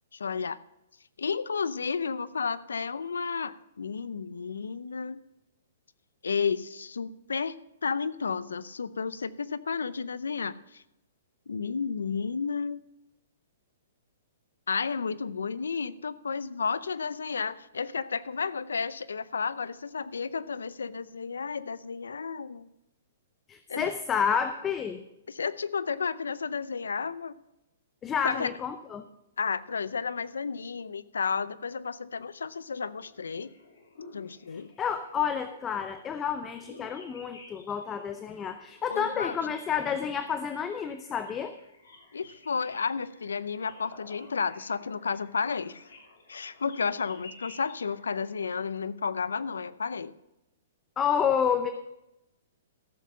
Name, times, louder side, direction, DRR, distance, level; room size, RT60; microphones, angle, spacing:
voice 1, 0.1-0.6 1.2-5.2 6.2-7.6 7.8-10.8 11.5-12.8 14.7-22.7 23.7-23.9 25.3-27.3 28.2-28.5 29.4-33.5 34.1-34.7 38.9-39.6 42.1-45.9 46.3-50.1, left 5 dB, 90° left, 17 dB, 0.5 m, -32 dB
voice 2, 23.5-25.0 28.0-29.1 34.8-41.5 51.0-51.7, left 7 dB, 20° left, 9 dB, 0.6 m, -29 dB
sound 1, 32.9-48.8, left 3 dB, 75° left, 3.2 m, -53 dB
14.0 x 7.5 x 5.6 m, 0.89 s
hypercardioid pair, 135°, 0 cm